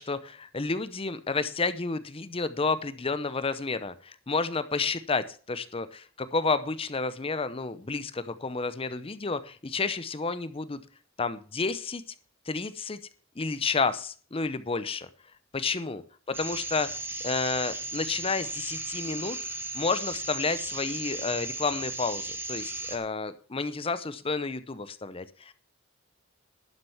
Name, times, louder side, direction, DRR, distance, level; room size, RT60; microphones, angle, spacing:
voice 1, 0.0-10.8 11.2-12.0 12.5-13.0 13.4-15.1 15.5-16.0 16.3-16.9 17.2-19.4 19.7-25.5, left 4 dB, 25° left, 13 dB, 0.7 m, -30 dB
sound 1, 16.3-23.0, right 2 dB, 10° right, 1.5 m, -36 dB
11.5 x 6.6 x 7.1 m, 0.40 s
head